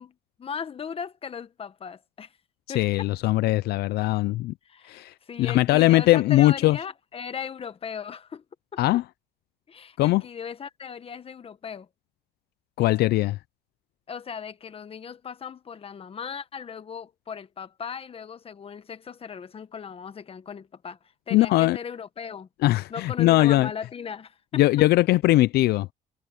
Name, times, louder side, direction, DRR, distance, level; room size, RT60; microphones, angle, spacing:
voice 1, 0.0-2.4 2.7-3.1 4.7-8.4 8.7-8.8 9.7-11.9 14.1-21.0 21.3-22.5 22.9-24.6, left 7 dB, 35° left, 1.2 m, -37 dB
voice 2, 2.7-4.5 4.8-6.8 8.8-9.0 10.0-10.2 12.8-13.4 21.3-21.8 22.6-23.7 24.5-25.9, left 17 dB, 70° left, 0.4 m, -20 dB
cardioid pair, 110°, 17 cm